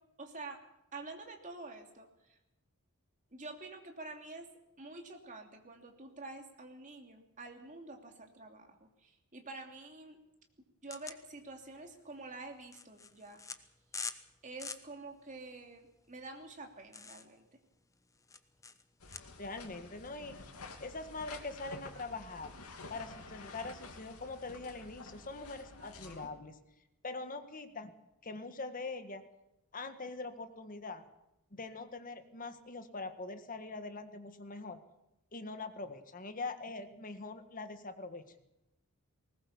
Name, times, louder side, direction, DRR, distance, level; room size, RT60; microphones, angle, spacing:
voice 1, 0.2-0.6 0.9-2.1 3.3-4.5 4.8-10.2 10.8-13.4 14.4-17.4, right 3 dB, 35° right, 3 dB, 2.9 m, -48 dB
sound 1, 10.9-19.2, left 5 dB, 15° left, 1.0 m, -47 dB
sound 2, 19.0-26.3, left 3 dB, 85° left, 2.8 m, -50 dB
voice 2, 19.4-20.5 20.8-22.6 22.9-26.6 27.0-27.9 28.2-29.2 29.7-31.0 31.5-34.8 35.3-38.2, left 3 dB, 40° left, 8 dB, 1.6 m, -43 dB
20.0 x 19.0 x 7.2 m, 0.89 s
head